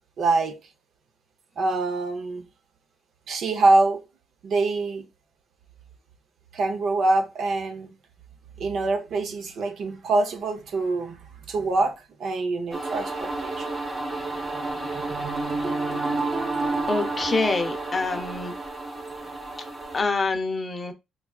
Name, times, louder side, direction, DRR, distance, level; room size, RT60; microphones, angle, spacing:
voice 1, 0.2-0.6 1.6-2.5 3.3-4.1 4.4-5.1 6.5-7.9 8.6-13.7, right 3 dB, 65° right, 0.7 m, -25 dB
sound 1, 12.7-20.0, right 2 dB, 25° right, 1.2 m, -30 dB
voice 2, 16.9-18.5 19.9-20.9, left 3 dB, 35° left, 0.6 m, -26 dB
4.5 x 2.4 x 2.3 m
cardioid pair, 90°, 0 cm